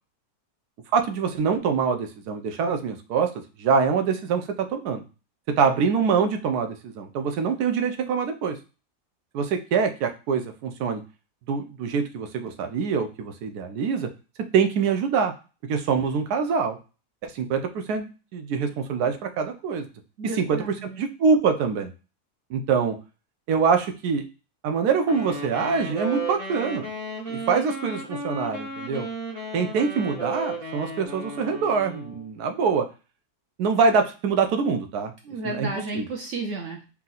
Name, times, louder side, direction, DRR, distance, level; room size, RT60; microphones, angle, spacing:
voice 1, 0.9-3.3 3.6-5.1 5.6-8.6 9.3-11.0 11.5-14.1 14.5-15.3 15.7-16.8 17.2-19.8 20.4-20.6 21.0-21.9 22.5-23.0 23.5-24.2 24.6-26.9 27.3-29.1 29.5-32.8 33.6-35.1 35.4-35.7 35.9-36.0, right 5 dB, 80° right, 6 dB, 1.2 m, -24 dB
voice 2, 20.2-21.1 35.2-36.9, right 3 dB, 60° right, 1 dB, 0.9 m, -33 dB
Wind instrument woodwind instrument, 25.0-32.3, right 2 dB, 40° right, 1.2 m, -34 dB
3.6 x 2.9 x 3.8 m, 0.33 s
omnidirectional pair, 1.6 m